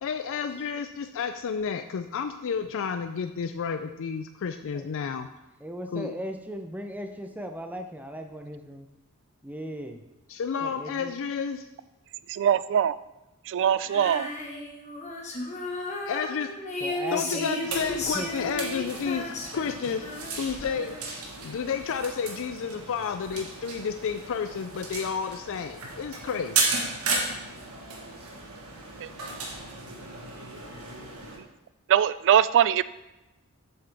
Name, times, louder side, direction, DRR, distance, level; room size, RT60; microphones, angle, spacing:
voice 1, 0.0-5.3 5.9-6.1 10.3-11.7 16.1-16.5 17.1-21.0 21.4-26.6, left 6 dB, 65° left, 8 dB, 0.4 m, -31 dB
voice 2, 5.6-8.9 9.4-10.0 10.6-11.1 16.8-17.5 18.1-18.3, equal, 5° right, 5 dB, 0.6 m, -37 dB
voice 3, 12.3-13.0 13.5-14.3 29.0-29.1 31.9-32.8, right 9 dB, 55° right, 17 dB, 0.3 m, -22 dB
Female singing, 13.9-21.2, left 2 dB, 35° left, 1.3 m, -34 dB
sound 1, 17.6-31.4, right 3 dB, 75° right, 1.4 m, -35 dB
7.4 x 6.9 x 3.5 m, 0.99 s
head